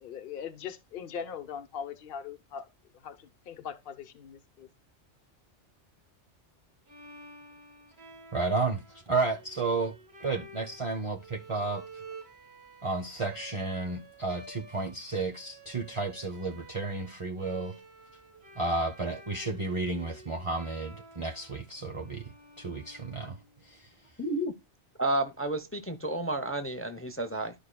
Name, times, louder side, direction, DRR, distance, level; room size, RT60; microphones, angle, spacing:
voice 1, 0.0-2.6 3.0-4.7, left 7 dB, 55° left, 1.0 m, -40 dB
Bowed string instrument, 6.9-23.8, right 2 dB, 60° right, 1.6 m, -51 dB
voice 2, 8.3-9.9 10.2-11.8 12.8-17.7 18.5-22.2 22.6-23.4 23.6-23.9, right 3 dB, 30° right, 0.8 m, -32 dB
voice 3, 24.2-24.5 25.0-27.5, right 1 dB, 15° left, 0.5 m, -31 dB
13.0 x 5.0 x 2.2 m
omnidirectional pair, 1.2 m